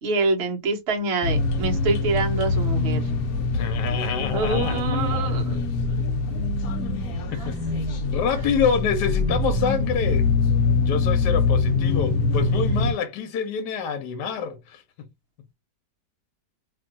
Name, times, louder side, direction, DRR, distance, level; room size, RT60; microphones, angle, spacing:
voice 1, 0.0-3.0 4.3-5.5, right 3 dB, 50° right, 1.0 m, -25 dB
sound 1, 1.2-12.9, left 3 dB, 70° left, 1.0 m, -24 dB
voice 2, 3.5-5.4 7.3-7.6 8.1-10.3 10.8-14.8, left 6 dB, 85° left, 1.2 m, -27 dB
2.8 x 2.6 x 2.5 m
omnidirectional pair, 1.8 m